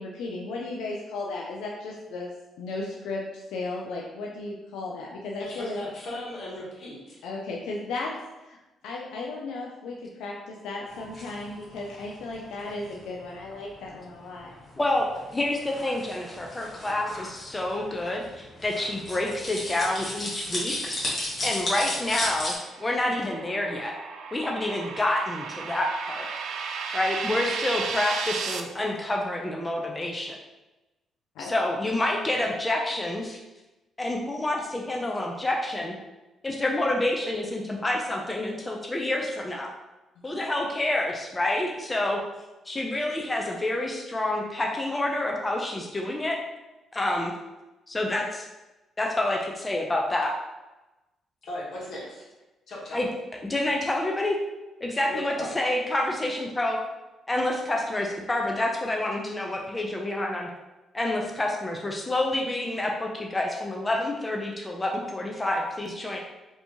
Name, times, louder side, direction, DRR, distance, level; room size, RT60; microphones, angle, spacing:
voice 1, 0.0-2.3 2.6-5.8 7.2-8.1 8.4-8.6 8.8-14.5 31.4-31.5, left 3 dB, 85° left, -2 dB, 0.4 m, -35 dB
voice 2, 5.4-7.2 51.4-52.3 52.7-53.0 55.1-55.5, left 1 dB, 60° left, -5 dB, 1.4 m, -37 dB
sound 1, 10.9-22.6, left 1 dB, 40° left, 1.3 m, -35 dB
voice 3, 14.8-20.9 21.4-23.9 24.3-26.3 26.9-30.4 31.4-33.4 34.0-35.9 36.4-39.7 40.2-42.2 42.7-46.4 46.9-47.3 47.9-48.5 49.0-50.3 52.9-53.1 53.5-54.4 54.8-56.8 57.3-60.5 60.9-66.2, left 1 dB, 20° left, 0 dB, 0.4 m, -28 dB
sound 2, 22.0-28.6, right 5 dB, 80° right, 0.3 m, -34 dB
3.3 x 2.7 x 2.9 m, 1.1 s
cardioid pair, 90°, 0 cm